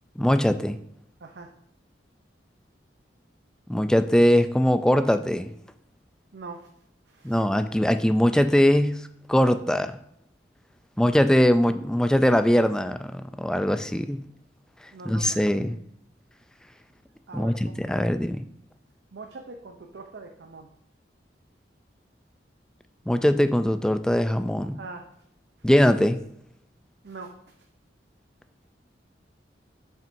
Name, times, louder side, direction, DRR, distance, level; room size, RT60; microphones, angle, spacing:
voice 1, 0.2-0.8 3.7-5.5 7.2-9.0 9.3-9.9 11.0-14.2 15.1-15.8 17.3-18.4 23.1-24.8 25.6-26.2, equal, 5° left, 9 dB, 0.3 m, -21 dB
voice 2, 1.2-1.5 6.3-6.7 7.1-7.4 14.9-15.4 17.3-18.1 19.1-20.7 24.8-25.1 27.0-27.3, right 3 dB, 70° right, 3 dB, 0.6 m, -42 dB
7.3 x 5.7 x 2.6 m, 0.71 s
head